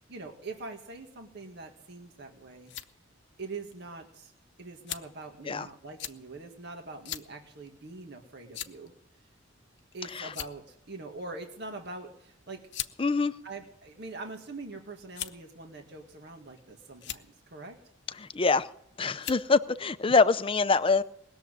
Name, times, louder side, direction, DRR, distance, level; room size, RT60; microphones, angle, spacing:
voice 1, 0.0-2.7 3.4-4.3 4.6-8.9 9.9-12.6 13.4-17.8, right 3 dB, 60° right, 1.8 m, -43 dB
sound 1, 2.3-2.9 3.7-3.8 4.9-5.2 6.0-6.2 7.0-7.3 7.7-7.8 8.5-8.9 9.8-9.9 10.2-10.7 11.8-12.0 12.7-13.0 13.8-14.4 15.1-15.5 16.3-16.6 16.9-17.2 18.4-18.7 19.2-19.5, left 11 dB, 65° left, 0.8 m, -38 dB
voice 2, 13.0-13.3 18.2-18.7 19.0-21.0, left 4 dB, 25° left, 0.6 m, -24 dB
20.0 x 7.2 x 9.7 m
head